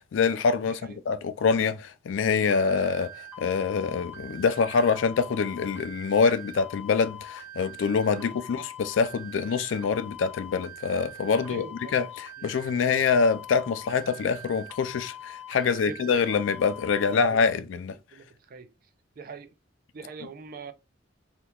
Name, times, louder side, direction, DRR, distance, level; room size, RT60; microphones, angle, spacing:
voice 1, 0.1-3.1 3.4-11.7 11.9-17.9, left 5 dB, 85° left, 0.4 m, -25 dB
voice 2, 0.7-1.0 3.8-4.0 8.2-8.3 11.5-12.0 12.4-12.5 15.6-16.0 16.8-17.7 18.1-18.7 19.2-19.5 19.9-20.7, right 5 dB, 50° right, 0.4 m, -43 dB
sound 1, 2.5-17.1, left 1 dB, 10° right, 0.9 m, -43 dB
2.9 x 2.3 x 3.4 m
head